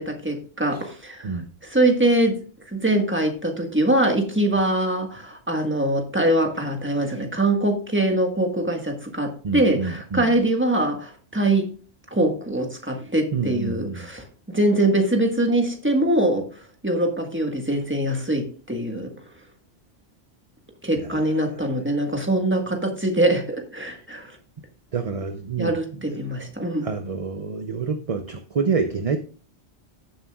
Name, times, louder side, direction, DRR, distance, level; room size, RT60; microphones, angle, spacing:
voice 1, 0.0-2.4 2.7-11.7 12.1-16.5 16.8-19.1 20.8-24.4 25.6-26.9, right 1 dB, 10° right, 1.5 m, -23 dB
voice 2, 9.4-10.3 13.3-14.0 21.0-21.4 24.9-25.7 26.1-26.2 26.8-29.2, right 5 dB, 40° right, 0.6 m, -27 dB
15.0 x 7.3 x 2.3 m
omnidirectional pair, 1.1 m